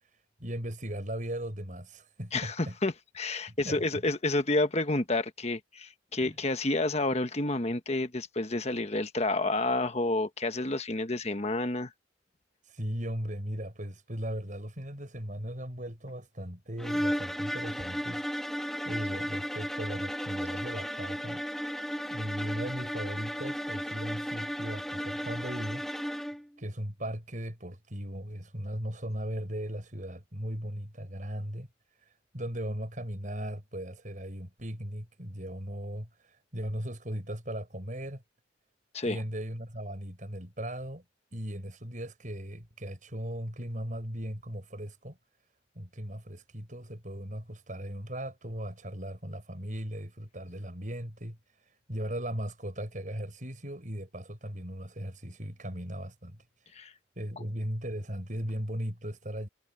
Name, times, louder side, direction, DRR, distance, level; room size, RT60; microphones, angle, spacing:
voice 1, 0.4-2.8 3.5-4.0 6.2-6.4 12.7-18.2 18.8-21.4 22.1-25.8 26.6-31.7 32.3-38.2 39.0-41.0 41.3-45.2 45.8-51.4 51.9-56.4 57.2-59.5, equal, 45° right, 6.0 m, -37 dB
voice 2, 2.3-11.9 38.9-39.2 56.7-56.9, left 2 dB, 35° left, 1.3 m, -29 dB
sound 1, 16.8-26.5, equal, ahead, 1.7 m, -34 dB
head